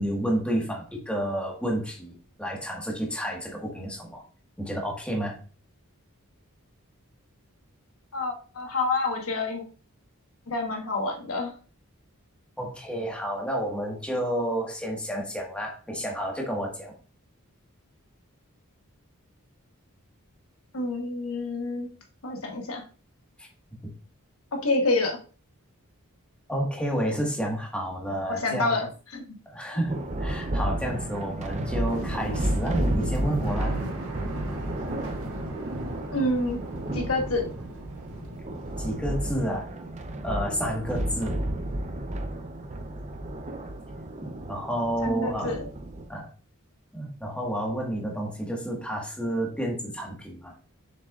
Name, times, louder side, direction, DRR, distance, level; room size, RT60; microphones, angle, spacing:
voice 1, 0.0-4.2 4.6-5.4 12.6-16.9 23.4-23.5 26.5-28.8 29.4-33.7 38.8-39.7 40.2-41.4 44.2-45.6 46.1-46.3 46.9-50.5, equal, 5° left, -1 dB, 1.5 m, -30 dB
voice 2, 8.1-9.6 10.5-11.5 20.7-21.9 22.2-22.8 24.6-25.2 28.3-28.9 29.1-29.2 36.1-36.6 36.9-37.4 45.0-45.7, left 2 dB, 70° left, 2 dB, 1.3 m, -27 dB
Thunder, 29.9-46.1, right 1 dB, 30° right, 0.7 m, -32 dB
sound 1, 30.1-40.2 40.4-41.3, right 1 dB, 75° right, 1.6 m, -39 dB
6.8 x 6.5 x 2.4 m, 0.37 s
head